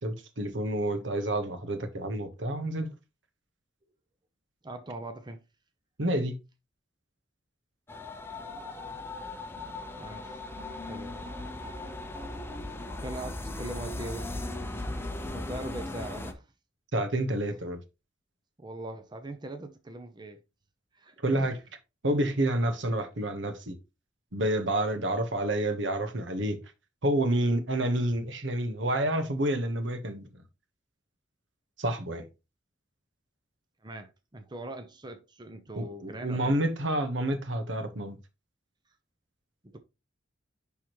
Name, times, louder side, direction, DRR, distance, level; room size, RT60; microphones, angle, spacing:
voice 1, 0.0-2.9 6.0-6.4 16.9-17.8 21.2-21.6 22.0-23.7 24.3-26.6 27.0-30.3 31.8-32.2 35.8-38.2, right 1 dB, 70° right, 1.2 m, -29 dB
voice 2, 4.6-5.4 10.0-10.4 10.9-11.6 13.0-14.3 15.3-16.5 17.4-17.5 18.6-20.4 20.9-21.6 33.8-36.6 39.6-39.8, right 1 dB, 25° right, 0.7 m, -41 dB
sound 1, 7.9-16.3, left 2 dB, 10° left, 0.8 m, -38 dB
10.5 x 3.6 x 3.1 m
head